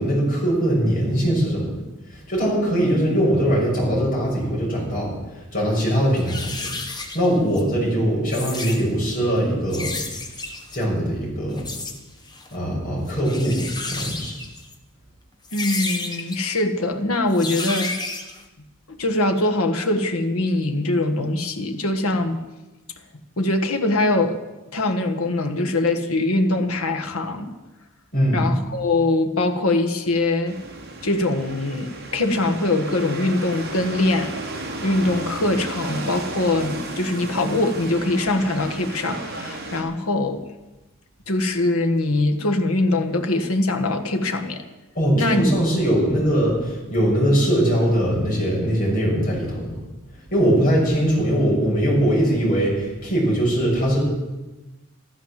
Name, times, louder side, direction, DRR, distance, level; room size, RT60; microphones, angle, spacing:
voice 1, 0.0-1.7 2.3-5.1 5.5-6.7 7.1-9.9 10.7-11.7 12.5-14.3 28.1-28.5 44.9-49.7 50.3-54.0, right 1 dB, 40° left, -4 dB, 6.5 m, -21 dB
sound 1, 5.7-5.8 6.1-7.6 8.2-8.8 9.7-10.8 11.6-12.0 12.3-12.5 13.1-14.7 15.4-16.4 17.3-18.4, left 3 dB, 20° left, 1.4 m, -31 dB
voice 2, 15.5-17.9 18.9-22.4 23.4-24.4 24.7-27.5 28.3-30.6 31.0-34.3 34.8-40.4 41.3-44.6 45.1-45.5, left 2 dB, 80° left, 6 dB, 1.5 m, -22 dB
sound 2, 30.4-39.8, right 2 dB, 50° right, 2.8 m, -34 dB
13.5 x 12.5 x 7.5 m, 1.1 s
head